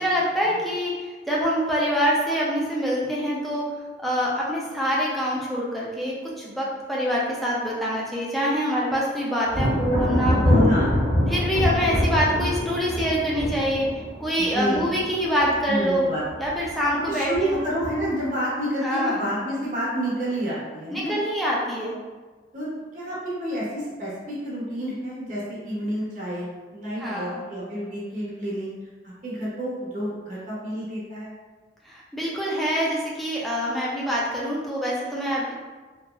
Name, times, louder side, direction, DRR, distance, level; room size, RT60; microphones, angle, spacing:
voice 1, 0.0-3.6 4.0-10.7 11.3-13.9 14.2-16.0 16.4-17.6 18.8-19.3 20.9-21.9 27.0-27.4 31.9-35.5, equal, ahead, -6 dB, 0.4 m, -25 dB
Thunder, 9.5-16.0 16.3-16.9 17.3-18.2, equal, 75° left, 1.2 m, -24 dB
voice 2, 10.5-11.4 14.4-14.9 15.7-16.2 16.9-21.1 22.5-26.5 26.7-28.7 29.0-31.3, equal, 45° right, -6 dB, 0.7 m, -29 dB
2.9 x 2.4 x 2.3 m, 1.4 s
head